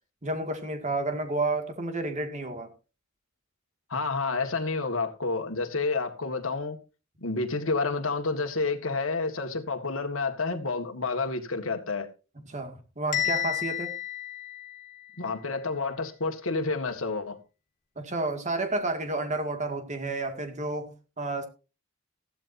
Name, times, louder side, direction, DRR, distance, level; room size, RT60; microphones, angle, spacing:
voice 1, 0.2-2.7 12.5-13.9 18.0-21.5, right 2 dB, 35° right, 2.2 m, -31 dB
voice 2, 3.9-6.8 7.2-12.1 15.2-17.4, left 3 dB, 70° left, 1.9 m, -29 dB
Bell, 13.1-15.2, left 12 dB, 40° left, 2.7 m, -31 dB
15.0 x 12.0 x 2.7 m
head